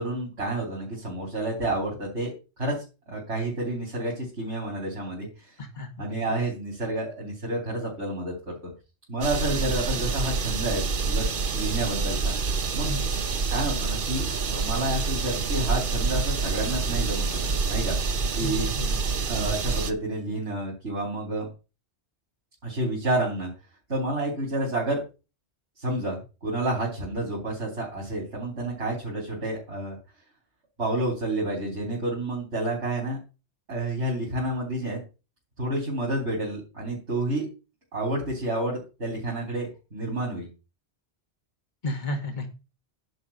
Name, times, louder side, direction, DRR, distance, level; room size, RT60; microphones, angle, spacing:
voice 1, 0.0-2.3 2.6-5.5 6.0-8.6 9.1-11.3 11.5-12.3 12.7-12.9 13.5-17.9 18.4-18.7 19.3-21.5 22.6-23.5 23.9-25.0 25.8-30.0 30.8-33.2 33.7-35.0 35.6-37.5 37.9-40.5, right 1 dB, 90° right, -4 dB, 3.8 m, -29 dB
voice 2, 5.6-6.2 9.5-9.6 12.9-13.2 18.4-19.0 41.8-42.5, left 1 dB, 45° left, 3 dB, 2.1 m, -33 dB
sound 1, 9.2-19.9, right 4 dB, 55° right, 1.1 m, -27 dB
10.5 x 4.7 x 7.1 m, 0.31 s
omnidirectional pair, 1.1 m